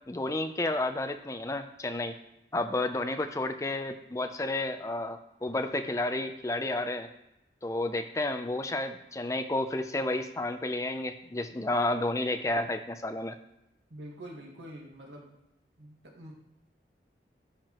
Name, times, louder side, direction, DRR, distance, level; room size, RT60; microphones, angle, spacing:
voice 1, 0.1-2.2 2.5-7.1 7.6-13.4, left 2 dB, 15° left, 8 dB, 0.4 m, -31 dB
voice 2, 13.9-15.4 15.8-16.3, right 1 dB, 85° right, -1 dB, 1.6 m, -46 dB
12.5 x 4.6 x 3.0 m, 0.88 s
head